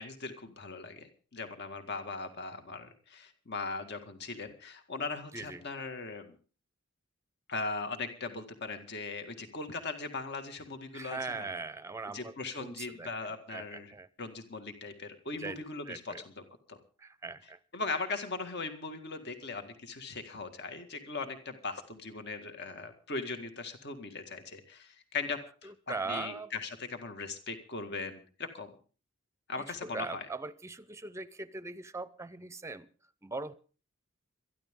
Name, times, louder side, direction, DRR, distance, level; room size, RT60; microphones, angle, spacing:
voice 1, 0.0-6.3 7.5-11.5 12.1-16.1 16.7-16.8 17.7-25.7 26.1-28.7 29.5-30.3, left 3 dB, 55° left, 7 dB, 2.0 m, -39 dB
voice 2, 5.3-5.6 10.9-12.3 12.6-13.1 13.5-14.1 15.4-16.2 17.0-17.6 25.6-26.5 29.7-32.9 33.2-33.5, right 3 dB, 15° right, 16 dB, 0.7 m, -40 dB
22.5 x 14.0 x 3.7 m, 0.37 s
head